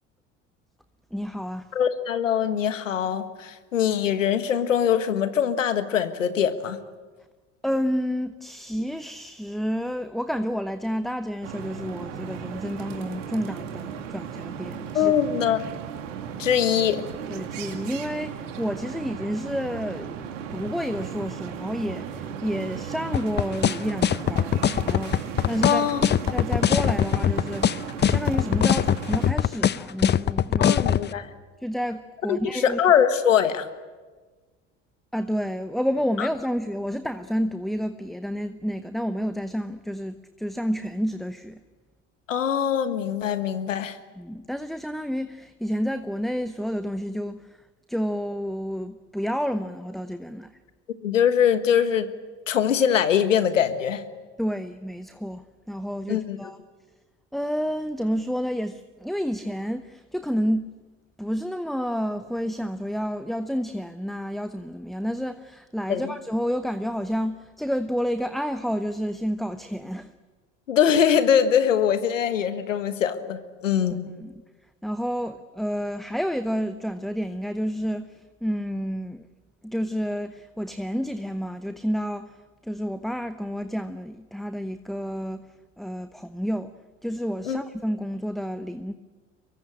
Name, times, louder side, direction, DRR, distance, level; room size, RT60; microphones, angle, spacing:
voice 1, 1.1-1.7 7.6-15.1 17.3-25.9 26.3-27.7 28.0-30.8 31.6-32.8 35.1-41.6 44.2-47.6 47.9-50.5 54.4-56.6 57.3-60.7 61.2-70.1 74.2-74.4 74.8-79.3 79.6-82.4 82.6-85.4 85.8-86.8 87.0-88.9, equal, ahead, 0.9 m, -30 dB
voice 2, 1.7-6.8 14.9-15.6 16.4-17.0 25.6-26.0 30.6-31.3 32.3-33.7 36.2-36.3 42.3-44.0 51.0-52.1 52.5-54.0 56.1-56.4 65.9-66.1 70.7-74.0 87.4-87.6, left 8 dB, 80° left, 1.5 m, -22 dB
sound 1, 11.4-29.3, right 7 dB, 75° right, 2.5 m, -36 dB
sound 2, 23.1-31.0, left 9 dB, 30° left, 0.7 m, -21 dB
24.0 x 22.5 x 8.8 m
figure-of-eight pair, 65°, 37 cm